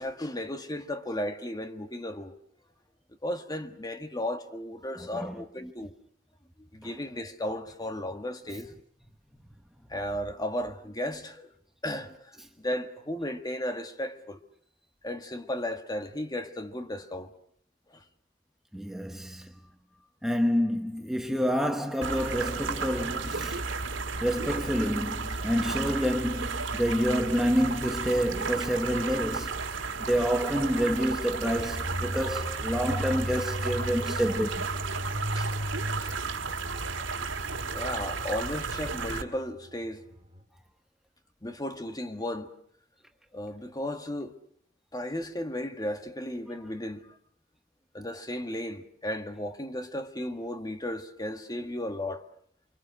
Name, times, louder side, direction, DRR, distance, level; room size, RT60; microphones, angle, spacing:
voice 1, 0.0-2.3 3.2-5.9 6.7-8.7 9.9-11.5 11.8-14.4 15.0-17.3 17.9-18.0 22.1-22.3 33.8-33.9 35.3-35.5 36.0-36.1 37.7-40.0 41.4-42.5 43.3-44.3 44.9-47.1 47.9-52.2, left 1 dB, 20° left, 1.6 m, -35 dB
voice 2, 5.0-5.4 6.8-6.9 18.7-19.5 20.2-23.6 24.2-29.6 30.1-34.7, equal, ahead, 1.0 m, -28 dB
sound 1, 22.0-39.2, right 4 dB, 80° right, 2.2 m, -33 dB
sound 2, 31.6-40.4, equal, 25° right, 2.4 m, -37 dB
29.0 x 24.5 x 6.4 m
head